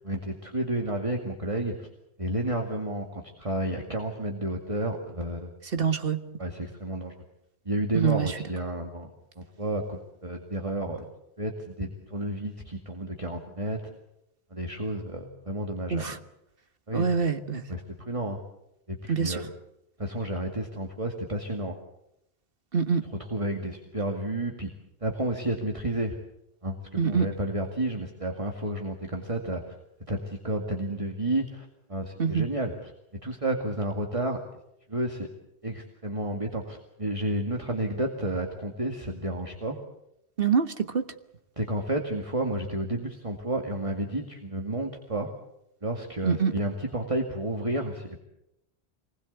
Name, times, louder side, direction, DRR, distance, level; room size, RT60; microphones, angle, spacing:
voice 1, 0.0-1.9 2.2-5.5 6.4-7.1 7.7-11.0 11.4-13.8 14.5-16.1 16.9-17.3 17.7-18.4 18.9-19.5 20.0-21.8 23.3-24.7 25.0-26.1 26.6-29.6 30.1-32.9 33.2-34.4 34.9-35.3 35.6-39.8 41.6-45.3 45.8-48.2, right 1 dB, 30° right, 3 dB, 2.2 m, -31 dB
voice 2, 5.7-6.2 7.9-8.4 15.9-16.2 16.9-17.6 19.1-19.5 22.7-23.0 27.0-27.3 32.2-32.5 40.4-41.0 46.2-46.5, right 6 dB, 60° right, 9 dB, 1.6 m, -25 dB
26.0 x 20.5 x 8.2 m, 0.84 s
omnidirectional pair, 1.1 m